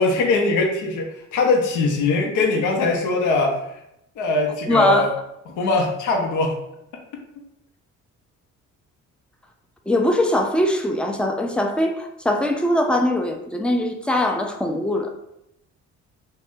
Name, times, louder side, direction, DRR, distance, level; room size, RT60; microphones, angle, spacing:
voice 1, 0.0-3.6 4.2-5.1 5.6-6.5, left 3 dB, 80° left, 1 dB, 0.6 m, -21 dB
voice 2, 4.7-5.1 9.9-15.1, left 1 dB, 5° left, 3 dB, 0.3 m, -21 dB
2.5 x 2.1 x 3.5 m, 0.82 s
cardioid pair, 90°, 30 cm